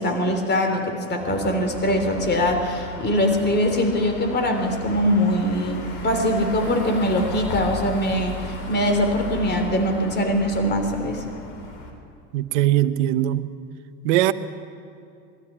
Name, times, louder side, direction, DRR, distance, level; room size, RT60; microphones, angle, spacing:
voice 1, 0.0-11.2, equal, 30° left, 5 dB, 3.3 m, -22 dB
sound 1, 1.2-11.9, left 2 dB, 65° left, 4.1 m, -35 dB
voice 2, 12.3-13.5 14.0-14.3, right 14 dB, 70° right, 13 dB, 1.0 m, -20 dB
21.0 x 13.5 x 9.9 m, 2.5 s
hypercardioid pair, 90°, 36 cm